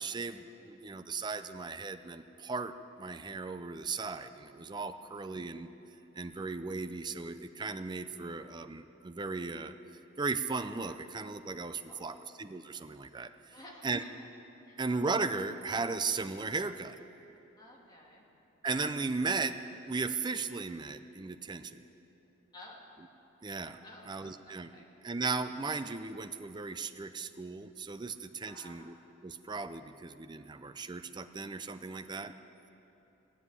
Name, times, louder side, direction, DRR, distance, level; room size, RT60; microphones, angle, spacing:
voice 1, 0.0-5.7 6.1-9.7 10.2-13.5 13.8-14.0 14.8-17.0 18.6-19.6 19.9-21.8 23.4-23.8 24.1-24.7 25.0-28.9 29.2-32.3, right 4 dB, 20° right, 10 dB, 0.4 m, -36 dB
voice 2, 5.0-5.5 11.9-12.3 13.5-14.3 14.6-14.8 17.6-18.3 22.5-22.8 23.8-24.9 28.0-28.2 28.4-29.0, left 1 dB, 20° left, -2 dB, 2.2 m, -54 dB
18.0 x 7.4 x 9.7 m, 2.9 s
head